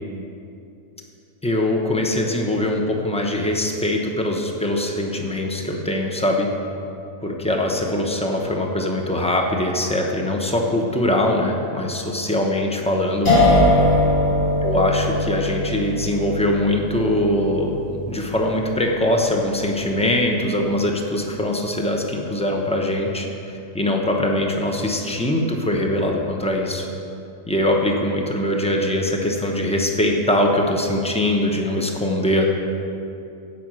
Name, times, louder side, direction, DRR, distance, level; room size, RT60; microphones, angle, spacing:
voice 1, 1.4-6.5 7.2-13.3 14.6-26.9 27.5-32.5, left 1 dB, 5° left, 1 dB, 0.5 m, -22 dB
sound 1, 13.3-20.2, left 1 dB, 85° left, 3.8 m, -22 dB
16.0 x 5.8 x 6.2 m, 2.7 s
omnidirectional pair, 1.9 m